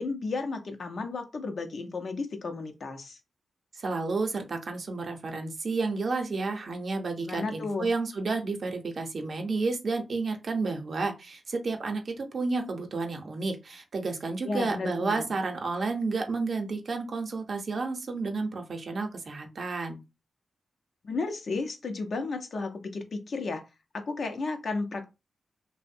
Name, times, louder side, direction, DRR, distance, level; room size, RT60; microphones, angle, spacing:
voice 1, 0.0-3.2 7.2-7.9 14.4-15.2 21.0-23.6 23.9-25.1, left 3 dB, 65° left, 6 dB, 0.5 m, -33 dB
voice 2, 3.7-20.0, right 3 dB, 60° right, 4 dB, 0.6 m, -31 dB
2.6 x 2.0 x 2.5 m, 0.26 s
cardioid pair, 55°, 0 cm